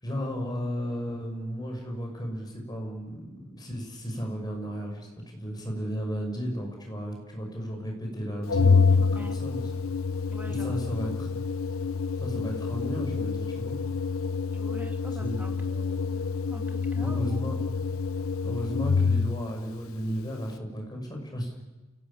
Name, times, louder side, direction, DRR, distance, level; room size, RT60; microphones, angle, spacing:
voice 1, 0.0-9.6 10.5-11.4 12.2-13.8 15.2-15.5 17.0-17.6 18.4-21.5, equal, 20° left, 1 dB, 6.4 m, -34 dB
Organ, 8.5-19.5, left 5 dB, 85° left, 0.8 m, -27 dB
voice 2, 8.9-9.4 10.3-11.2 14.5-17.5, equal, 10° right, 3 dB, 2.7 m, -45 dB
29.0 x 18.0 x 8.8 m, 1.2 s
head